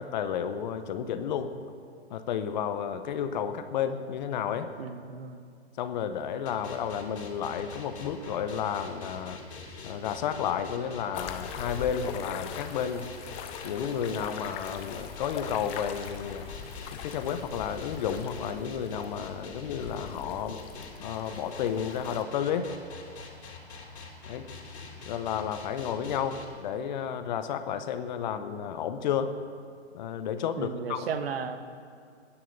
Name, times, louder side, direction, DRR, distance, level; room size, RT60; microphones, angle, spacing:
voice 1, 0.0-1.5 2.1-4.7 5.8-9.4 9.8-13.1 13.6-16.4 17.0-20.6 21.0-22.7 24.3-24.5 25.1-29.3 29.9-31.0, left 8 dB, 40° left, 10 dB, 0.9 m, -32 dB
voice 2, 4.8-5.4 30.6-31.6, right 6 dB, 60° right, 9 dB, 1.2 m, -34 dB
sound 1, 6.5-26.5, left 4 dB, 75° left, 3.5 m, -44 dB
sound 2, 11.1-22.2, left 8 dB, 20° left, 0.6 m, -42 dB
20.5 x 10.0 x 5.3 m, 2.2 s
hypercardioid pair, 140°, 34 cm